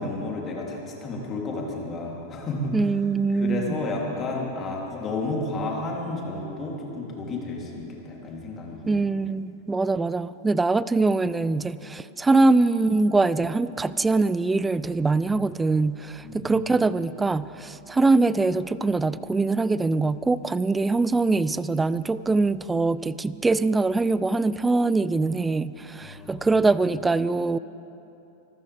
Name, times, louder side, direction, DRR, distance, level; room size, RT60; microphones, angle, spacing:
voice 1, 0.0-2.7 3.3-9.0 16.2-16.5 26.0-26.5, left 2 dB, 25° left, -2 dB, 3.2 m, -31 dB
voice 2, 2.7-3.8 8.9-27.6, right 3 dB, 10° right, 17 dB, 0.3 m, -23 dB
25.0 x 14.5 x 3.5 m, 2.9 s
figure-of-eight pair, 90°, 0 cm